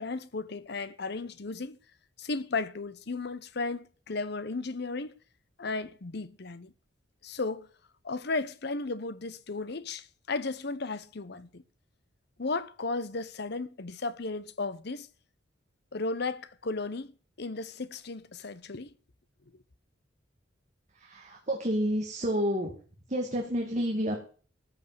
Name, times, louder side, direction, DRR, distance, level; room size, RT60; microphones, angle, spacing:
voice 1, 0.0-1.8 2.2-5.1 5.6-6.7 7.2-7.7 8.0-11.6 12.4-15.1 15.9-18.9 19.5-19.6, left 3 dB, 60° left, 0.9 m, -35 dB
voice 2, 20.9-22.7 23.1-24.2, equal, 40° right, 2.3 m, -29 dB
14.0 x 5.5 x 9.6 m
head